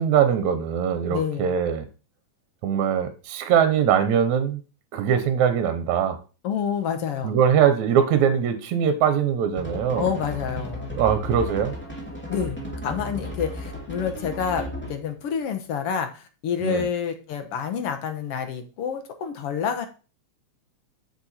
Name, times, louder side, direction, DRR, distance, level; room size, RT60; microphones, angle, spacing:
voice 1, 0.0-1.9 2.6-4.6 4.9-6.2 7.2-10.1 10.9-11.7 16.6-16.9, right 8 dB, 75° right, 2.3 m, -22 dB
voice 2, 1.1-1.5 6.4-7.4 10.0-11.0 12.3-19.9, left 7 dB, 60° left, 1.9 m, -28 dB
sound 1, 9.6-15.1, left 1 dB, 5° left, 1.8 m, -34 dB
7.7 x 6.6 x 4.3 m
omnidirectional pair, 3.4 m